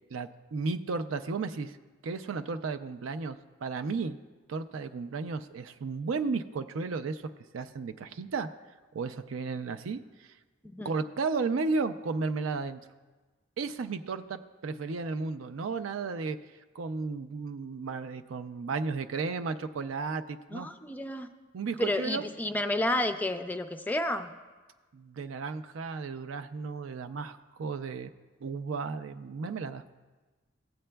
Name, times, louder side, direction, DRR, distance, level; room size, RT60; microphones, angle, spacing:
voice 1, 0.1-1.8 2.0-4.2 4.5-7.2 7.5-8.5 8.9-10.3 10.8-12.8 13.6-16.4 16.7-20.7 21.5-22.3 24.9-28.1 28.4-29.8, right 4 dB, 80° right, 8 dB, 0.4 m, -34 dB
voice 2, 20.5-21.3 21.8-24.3, left 1 dB, 10° left, 8 dB, 0.4 m, -31 dB
16.0 x 8.6 x 2.2 m, 1.3 s
head